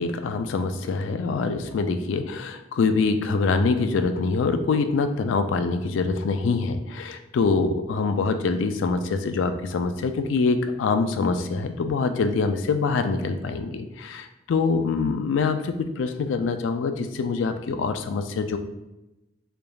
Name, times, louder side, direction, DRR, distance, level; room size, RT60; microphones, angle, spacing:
voice 1, 0.0-18.6, left 4 dB, 85° left, 8 dB, 0.4 m, -25 dB
3.8 x 3.4 x 2.3 m, 0.96 s
head